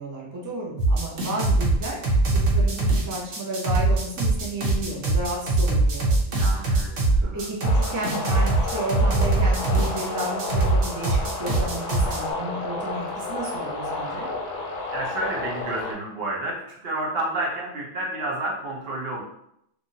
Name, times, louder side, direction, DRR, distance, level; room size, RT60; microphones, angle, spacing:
voice 1, 0.0-6.2 7.3-14.3, right 2 dB, 30° right, -3 dB, 0.3 m, -32 dB
sound 1, 0.8-12.2, right 2 dB, 85° right, 1.1 m, -22 dB
voice 2, 6.3-7.0 7.2-7.5 14.9-19.2, right 1 dB, 60° right, -3 dB, 0.9 m, -30 dB
sound 2, 7.6-15.9, left 3 dB, 60° left, 0.5 m, -31 dB
3.0 x 2.4 x 2.7 m, 0.75 s
omnidirectional pair, 1.2 m